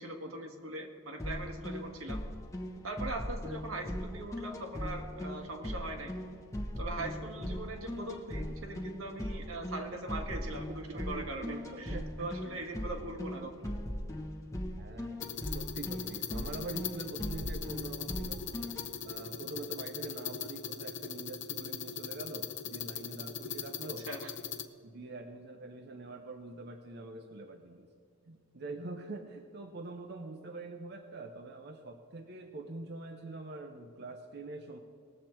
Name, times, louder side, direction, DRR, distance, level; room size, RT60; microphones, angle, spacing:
voice 1, 0.0-2.2 2.8-6.2 6.8-13.8 24.1-24.3, right 2 dB, 85° right, 3 dB, 1.6 m, -41 dB
sound 1, 1.2-18.9, equal, 15° left, 0.9 m, -39 dB
voice 2, 10.9-12.6 14.8-15.2 15.5-18.4 19.0-24.2 24.8-27.9 28.3-34.8, right 2 dB, 50° right, 4 dB, 0.7 m, -44 dB
sound 2, 15.2-24.7, left 7 dB, 60° left, 0.7 m, -40 dB
19.5 x 7.6 x 4.5 m, 2.1 s
head